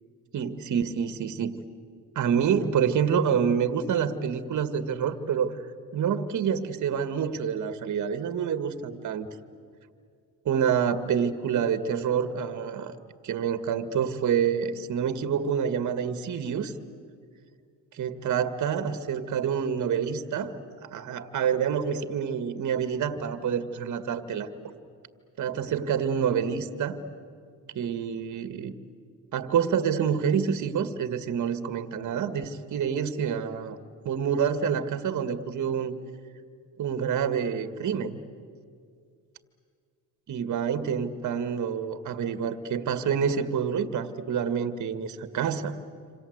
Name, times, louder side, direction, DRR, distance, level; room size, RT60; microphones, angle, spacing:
voice 1, 0.3-1.6 2.2-5.6 5.9-9.3 10.5-13.0 13.2-16.7 17.9-20.6 20.8-24.7 25.4-27.0 27.8-28.7 29.3-33.8 34.0-36.0 36.8-38.2 40.3-45.7, right 7 dB, 45° right, 10 dB, 1.9 m, -27 dB
27.0 x 27.0 x 8.0 m, 2.2 s
supercardioid pair, 85°, 40 cm